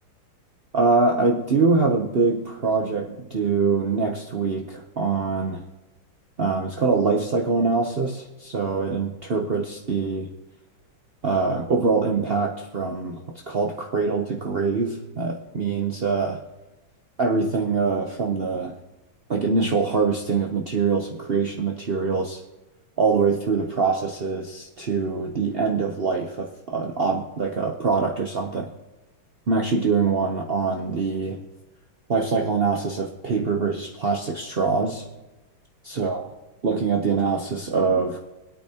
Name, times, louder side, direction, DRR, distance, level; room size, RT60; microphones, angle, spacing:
voice 1, 0.7-5.6 6.4-10.3 11.2-13.2 13.5-16.4 17.2-18.8 19.3-22.4 23.0-28.7 29.5-31.4 32.1-35.0 35.8-36.3 36.6-38.2, right 4 dB, 90° right, 1 dB, 0.5 m, -24 dB
24.5 x 8.7 x 2.9 m, 1.1 s
omnidirectional pair, 2.3 m